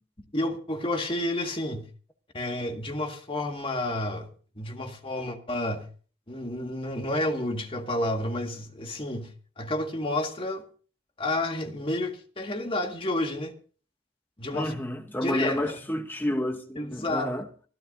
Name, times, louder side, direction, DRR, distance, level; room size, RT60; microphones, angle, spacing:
voice 1, 0.3-1.9 2.3-4.3 4.5-5.8 6.3-9.3 9.6-10.6 11.2-13.5 14.4-14.7 15.2-15.8 16.8-17.3, left 1 dB, 30° left, 1.8 m, -30 dB
voice 2, 14.5-17.5, left 1 dB, 10° left, 0.9 m, -30 dB
25.0 x 11.5 x 2.6 m
head